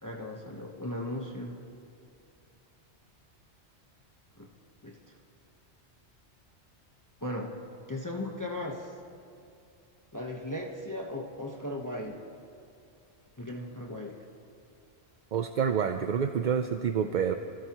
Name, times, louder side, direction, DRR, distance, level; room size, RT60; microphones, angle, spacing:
voice 1, 0.0-1.6 4.4-4.5 4.8-5.0 7.2-7.5 7.9-8.9 10.1-12.2 13.4-14.2, left 1 dB, 15° left, -1 dB, 1.1 m, -37 dB
voice 2, 15.3-17.3, right 7 dB, 55° right, 7 dB, 0.6 m, -28 dB
26.5 x 16.0 x 3.0 m, 2.6 s
omnidirectional pair, 1.1 m